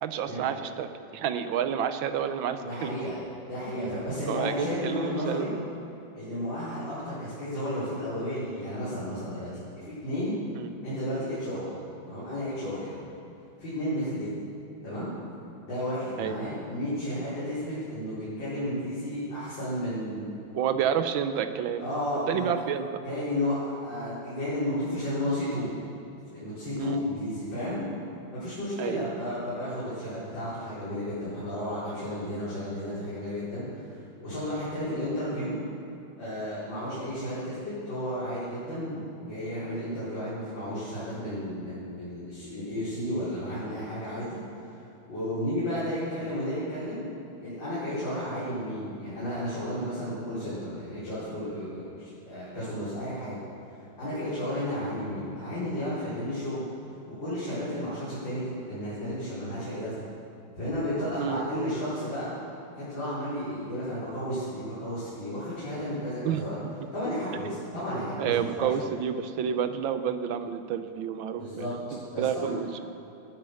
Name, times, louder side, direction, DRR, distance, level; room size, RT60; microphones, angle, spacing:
voice 1, 0.0-3.0 3.8-5.6 10.5-10.7 16.2-16.4 20.5-21.9 22.3-23.0 26.8-27.0 28.8-29.0 61.2-61.5 66.2-66.9 68.2-72.8, right 8 dB, 75° right, 10 dB, 1.5 m, -30 dB
voice 2, 2.6-3.2 3.5-5.5 6.1-9.5 9.8-10.3 10.8-11.7 12.0-13.0 13.6-14.5 14.8-15.1 15.6-20.3 21.8-22.5 23.0-25.7 26.3-27.8 28.3-35.6 36.2-44.4 45.1-47.1 47.4-53.4 54.0-56.6 57.2-60.0 60.6-62.3 62.7-66.5 66.9-68.7 71.4-71.7 72.1-72.5, equal, 65° left, -12 dB, 5.0 m, -33 dB
18.5 x 9.0 x 6.5 m, 2.9 s
omnidirectional pair, 2.2 m